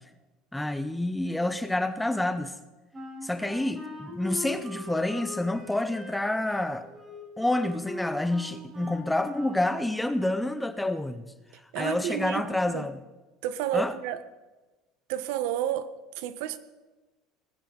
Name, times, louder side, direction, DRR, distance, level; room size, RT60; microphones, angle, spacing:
voice 1, 0.5-2.5 3.2-6.9 7.4-11.3 11.8-13.0 13.7-13.9, left 1 dB, 5° left, 0.6 m, -28 dB
Wind instrument woodwind instrument, 2.9-9.7, left 2 dB, 20° right, 4.4 m, -41 dB
voice 2, 11.7-12.4 12.7-12.9 13.4-14.2 15.1-16.6, right 11 dB, 70° right, 1.1 m, -31 dB
20.5 x 14.5 x 3.9 m
cardioid pair, 155°, 0 cm